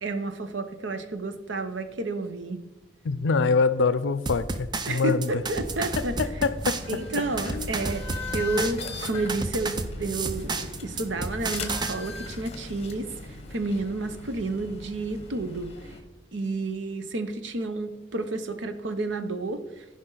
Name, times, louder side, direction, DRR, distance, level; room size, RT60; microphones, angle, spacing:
voice 1, 0.0-2.6 4.9-6.2 6.9-8.1 8.3-13.1 13.5-15.7 16.3-19.8, right 2 dB, 75° right, 9 dB, 0.8 m, -30 dB
voice 2, 3.0-5.4 6.0-6.8 7.5-7.7, left 4 dB, 75° left, 15 dB, 0.5 m, -25 dB
sound 1, 4.3-11.9, right 3 dB, 25° right, 0.5 m, -32 dB
sound 2, 5.4-16.0, left 3 dB, 35° left, 1.1 m, -39 dB
15.0 x 5.1 x 3.9 m, 1.1 s
head